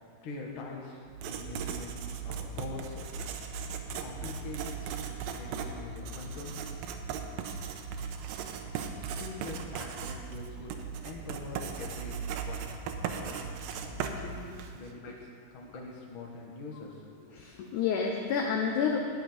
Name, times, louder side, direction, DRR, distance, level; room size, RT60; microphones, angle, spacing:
voice 1, 0.2-1.9 2.2-3.3 4.0-6.5 9.1-10.7 11.0-12.7 13.1-13.3 13.8-17.2, left 3 dB, 50° left, -1 dB, 1.5 m, -44 dB
Writing, 1.1-14.9, right 6 dB, 80° right, 2.4 m, -38 dB
voice 2, 17.3-19.0, left 6 dB, 75° left, 1 dB, 1.9 m, -29 dB
13.5 x 5.1 x 9.1 m, 2.3 s
omnidirectional pair, 4.3 m